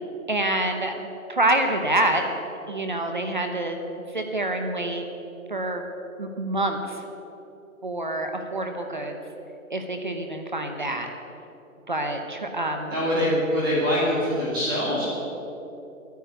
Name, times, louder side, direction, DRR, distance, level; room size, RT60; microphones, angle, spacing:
voice 1, 0.3-2.3 2.7-3.8 4.1-5.0 5.5-5.8 6.2-7.0 7.8-9.2 9.7-11.1 11.9-13.3, right 1 dB, 35° right, 4 dB, 0.8 m, -27 dB
voice 2, 12.9-15.1, equal, 15° right, -8 dB, 2.5 m, -24 dB
11.5 x 10.5 x 9.1 m, 3.0 s
hypercardioid pair, 180°, 43 cm